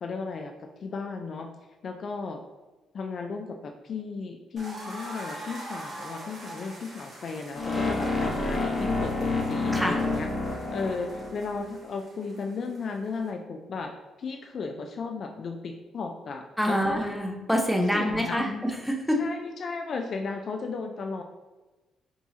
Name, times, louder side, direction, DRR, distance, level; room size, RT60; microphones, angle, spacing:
voice 1, 0.0-1.5 1.8-2.4 2.9-10.3 10.7-13.9 14.2-17.0 17.9-18.6 19.2-21.2, left 4 dB, 55° left, 3 dB, 0.3 m, -35 dB
sound 1, 4.6-13.3, right 1 dB, 45° right, 1.2 m, -44 dB
sound 2, 7.5-11.6, left 2 dB, 25° left, 1.0 m, -29 dB
voice 2, 16.6-19.2, equal, ahead, 1 dB, 0.7 m, -26 dB
4.5 x 2.8 x 2.8 m, 1.2 s
cardioid pair, 90°, 0 cm